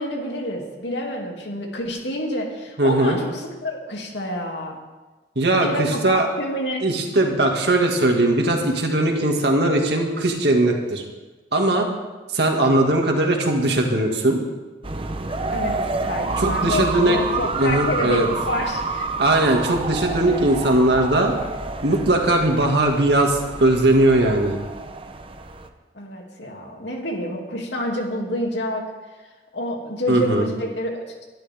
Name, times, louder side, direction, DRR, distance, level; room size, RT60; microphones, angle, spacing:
voice 1, 0.0-4.8 5.6-6.8 15.5-19.1 25.9-28.9 29.5-31.3, left 1 dB, 75° left, 0 dB, 2.8 m, -28 dB
voice 2, 2.8-3.2 5.4-6.3 6.8-11.0 11.5-11.9 12.3-14.4 16.4-17.2 17.6-18.3 19.2-21.3 21.8-24.6 30.1-30.5, right 1 dB, 65° right, 2 dB, 2.3 m, -19 dB
sound 1, 14.8-25.7, right 3 dB, 30° right, 0.9 m, -28 dB
22.0 x 12.0 x 3.7 m, 1.2 s
head